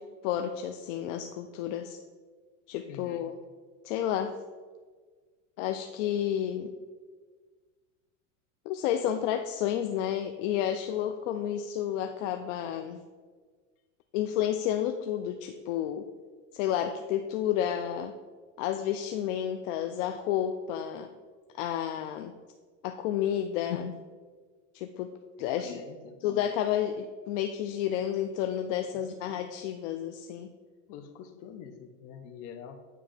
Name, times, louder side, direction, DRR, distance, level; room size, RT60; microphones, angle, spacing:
voice 1, 0.0-2.0 2.7-3.3 3.8-4.4 5.6-6.7 8.7-13.0 14.1-16.1 16.5-18.1 18.6-21.1 21.5-22.3 22.8-24.0 24.7-25.8 26.2-30.5, left 10 dB, 70° left, 7 dB, 0.6 m, -31 dB
voice 2, 2.9-3.3 23.6-23.7 25.4-26.2 28.9-29.1 30.9-32.9, left 7 dB, 55° left, 7 dB, 1.0 m, -46 dB
9.3 x 3.3 x 5.1 m, 1.5 s
supercardioid pair, 130°, 39 cm